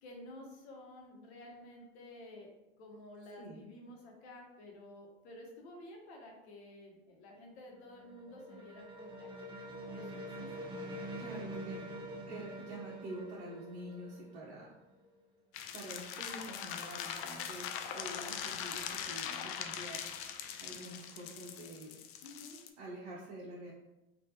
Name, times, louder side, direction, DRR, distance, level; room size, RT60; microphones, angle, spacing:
voice 1, 0.0-2.5 2.8-9.3 9.9-10.9 11.3-12.0 22.2-22.6, left 1 dB, 70° left, 0 dB, 1.0 m, -52 dB
sound 1, 7.4-15.1, right 1 dB, 15° right, 0.6 m, -45 dB
voice 2, 11.2-11.8 12.3-14.7 15.7-20.0 20.6-22.0 22.8-23.7, right 1 dB, 65° right, -4 dB, 0.8 m, -47 dB
sound 2, 15.5-22.7, left 8 dB, 45° left, 0.4 m, -41 dB
3.3 x 2.5 x 2.8 m, 0.96 s
hypercardioid pair, 90°, 33 cm